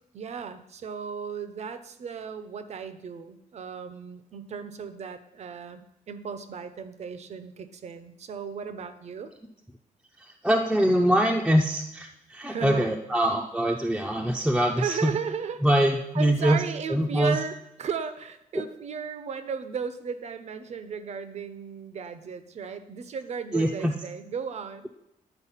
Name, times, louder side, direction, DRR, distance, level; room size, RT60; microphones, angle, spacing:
voice 1, 0.1-9.3 12.5-12.9 14.8-15.9 16.1-24.9, right 6 dB, 50° right, 11 dB, 0.6 m, -35 dB
voice 2, 10.2-15.1 15.6-16.6 16.9-17.4 18.5-18.6 23.5-23.9, equal, 5° right, 0 dB, 0.5 m, -23 dB
9.9 x 4.2 x 5.6 m, 0.85 s
wide cardioid pair, 165°, 15 cm